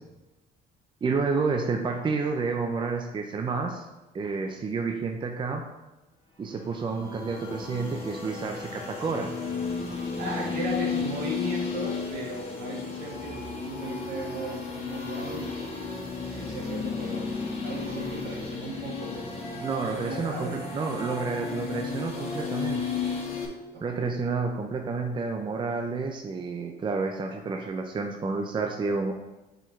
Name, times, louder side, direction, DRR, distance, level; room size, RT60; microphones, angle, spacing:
voice 1, 1.0-3.9 4.1-5.6 6.4-9.3 19.6-22.9 23.8-29.1, right 4 dB, 30° right, 3 dB, 0.6 m, -30 dB
sound 1, 6.5-23.5, left 5 dB, 35° left, 1.6 m, -33 dB
voice 2, 10.2-15.8 16.3-17.2 17.6-19.3 19.9-20.7 23.7-24.1, right 1 dB, 70° right, -3 dB, 2.0 m, -36 dB
7.6 x 4.6 x 3.2 m, 1.0 s
cardioid pair, 110°, 17 cm